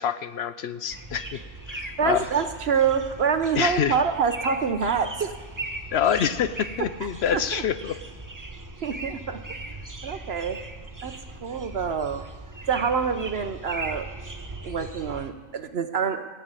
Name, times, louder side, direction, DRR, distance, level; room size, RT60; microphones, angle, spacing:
voice 1, 0.0-1.4 1.7-2.2 3.6-4.0 5.9-7.9, left 8 dB, 60° left, 12 dB, 0.7 m, -26 dB
sound 1, 0.9-15.3, right 2 dB, 20° right, 0.6 m, -39 dB
voice 2, 2.0-5.3 7.3-7.6 8.8-9.4 10.0-10.6 11.0-11.1 11.4-12.2 12.7-14.1 14.6-16.3, right 6 dB, 55° right, 9 dB, 0.9 m, -26 dB
16.0 x 8.0 x 8.9 m, 1.5 s
omnidirectional pair, 1.5 m